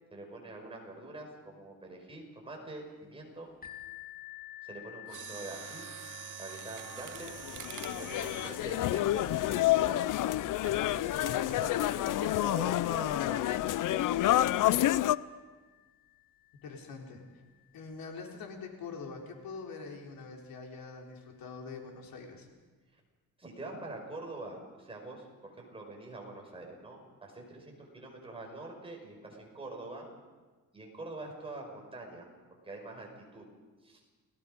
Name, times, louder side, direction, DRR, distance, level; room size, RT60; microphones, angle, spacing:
voice 1, 0.1-3.5 4.6-5.9 6.4-7.3 7.9-10.0 10.9-13.4 13.9-14.3 23.4-30.1 30.7-32.3 32.6-33.5 33.8-34.0, right 2 dB, 15° right, 0 dB, 5.4 m, -45 dB
sound 1, 3.6-19.2 19.9-20.0 20.6-20.7, left 15 dB, 25° left, 2.1 m, -53 dB
Mechanisms, 5.0-10.0 10.6-10.8 11.5-11.8 12.1-12.2, right 11 dB, 65° right, 0.9 m, -46 dB
sound 2, 7.2-15.2, left 14 dB, 65° left, 0.6 m, -29 dB
voice 2, 16.6-17.4 17.7-22.5, left 4 dB, 80° left, 1 dB, 4.0 m, -44 dB
29.5 x 18.0 x 5.3 m, 1.3 s
cardioid pair, 150°, 34 cm